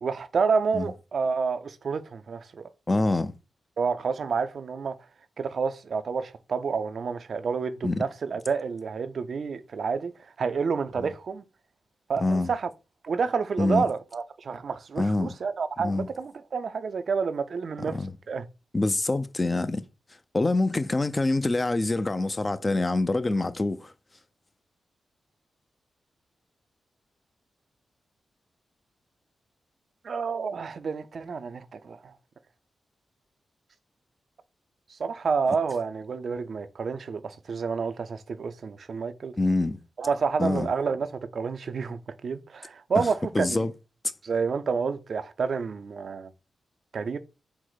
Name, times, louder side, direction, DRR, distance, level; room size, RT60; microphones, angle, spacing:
voice 1, 0.0-2.7 3.8-5.0 5.4-10.1 10.4-11.4 12.1-12.7 13.0-18.0 18.3-18.4 30.0-32.1 34.9-39.4 40.0-43.6 44.2-46.3 46.9-47.2, right 5 dB, 65° right, 0.4 m, -29 dB
voice 2, 2.9-3.3 7.8-8.0 11.0-11.1 12.2-12.5 13.6-13.8 15.0-15.3 15.8-16.1 17.9-18.1 18.7-19.8 20.3-23.9 39.4-39.8 40.4-40.7 43.0-43.1 43.3-43.7, left 2 dB, 35° left, 0.4 m, -25 dB
4.5 x 2.0 x 3.9 m
supercardioid pair, 40°, 0 cm